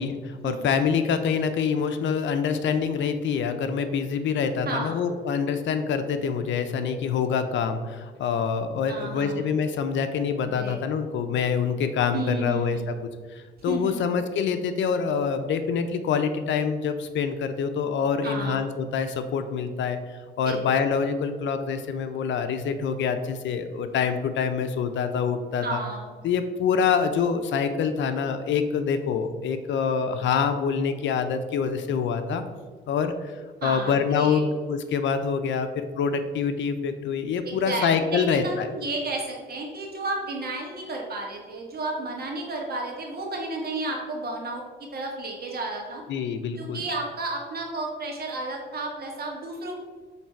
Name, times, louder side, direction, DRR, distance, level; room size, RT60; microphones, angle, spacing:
voice 1, 0.0-12.9 13.3-25.8 26.2-32.4 32.9-38.7 46.1-46.8, left 6 dB, 70° left, 9 dB, 0.6 m, -26 dB
voice 2, 4.7-5.0 8.9-9.5 10.5-10.8 12.1-12.9 13.7-14.1 18.2-18.6 20.5-20.6 25.6-26.1 33.6-34.4 37.5-46.0 46.6-49.8, right 2 dB, 50° right, 0 dB, 1.6 m, -32 dB
7.2 x 3.3 x 4.4 m, 1.5 s
cardioid pair, 90°, 20 cm